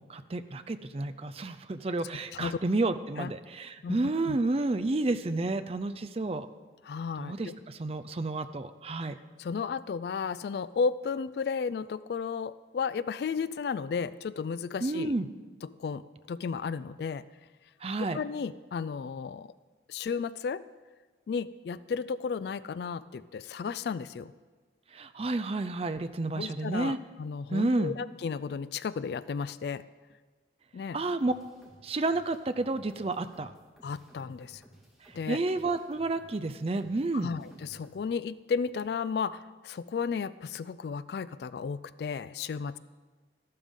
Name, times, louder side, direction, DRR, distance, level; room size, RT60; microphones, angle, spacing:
voice 1, 0.0-6.5 7.2-9.2 14.8-15.3 17.8-18.2 24.9-27.0 27.5-27.9 30.9-31.3 31.8-33.5 35.0-37.3, right 2 dB, 30° right, 10 dB, 0.4 m, -30 dB
voice 2, 6.8-7.5 9.4-15.1 15.6-16.0 16.3-17.2 18.1-19.5 19.9-20.6 21.3-24.3 26.3-29.8 30.7-31.0 33.8-34.6 35.1-35.4 37.2-42.8, left 5 dB, 60° left, 17 dB, 0.3 m, -33 dB
sound 1, 31.2-38.0, right 1 dB, ahead, 1.9 m, -57 dB
13.5 x 12.0 x 3.7 m, 1.4 s
head